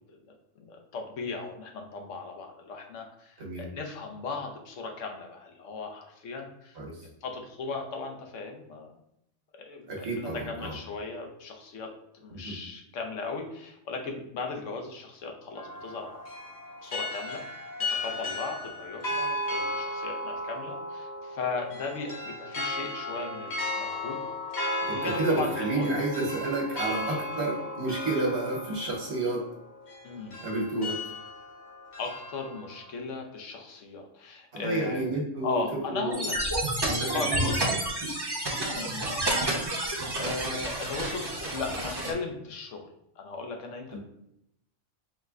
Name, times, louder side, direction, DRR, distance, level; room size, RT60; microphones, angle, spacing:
voice 1, 0.1-6.8 7.2-8.9 9.6-16.2 16.8-17.4 17.9-24.2 24.8-25.9 26.8-27.1 30.0-30.3 32.0-35.1 35.4-36.3 37.1-37.6 38.6-39.6 40.2-42.9 43.2-44.0, left 4 dB, 75° left, 3 dB, 1.1 m, -37 dB
voice 2, 3.4-3.7 6.7-7.1 9.9-10.8 12.3-12.6 24.9-29.5 30.4-31.0 34.5-36.2 36.8-37.8 43.9-44.0, right 2 dB, 60° right, -1 dB, 1.4 m, -30 dB
sound 1, 15.6-32.9, left 1 dB, 40° left, 0.8 m, -35 dB
sound 2, 36.1-42.1, right 1 dB, 25° right, 0.7 m, -30 dB
4.8 x 2.1 x 3.5 m, 0.79 s
omnidirectional pair, 1.3 m